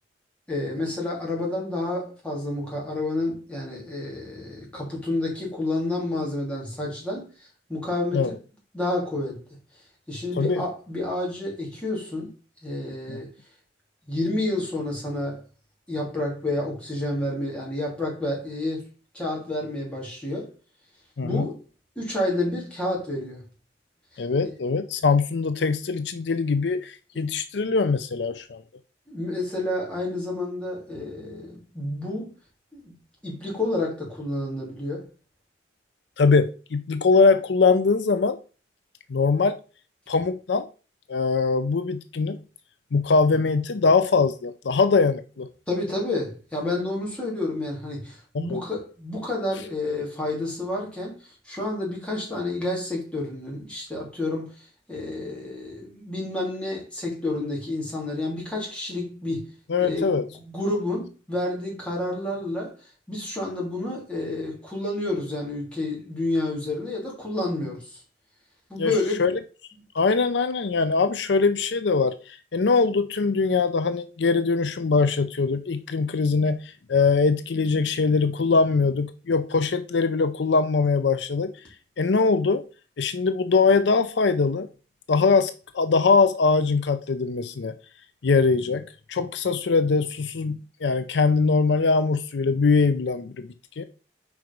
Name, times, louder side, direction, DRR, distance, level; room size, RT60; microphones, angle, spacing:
voice 1, 0.5-7.3 7.7-8.3 8.7-9.4 10.1-12.3 12.6-13.3 14.1-15.4 15.9-18.8 19.1-20.5 21.2-21.5 22.0-23.4 27.1-27.2 29.1-32.3 32.7-32.9 33.2-35.1 45.7-51.1 51.4-59.4 59.8-62.7 63.1-68.0 68.7-69.3, left 2 dB, 5° left, 2.8 m, -29 dB
voice 2, 21.2-21.5 24.2-28.6 36.2-38.4 39.1-39.6 40.1-40.7 41.1-42.4 42.9-45.5 48.3-48.6 59.7-60.3 68.8-68.9 69.2-69.3 69.9-81.5 82.0-82.6 83.0-84.7 85.1-87.7 88.2-88.8 89.1-93.5 93.8-93.9, left 4 dB, 75° left, 0.5 m, -22 dB
4.9 x 4.7 x 5.2 m
head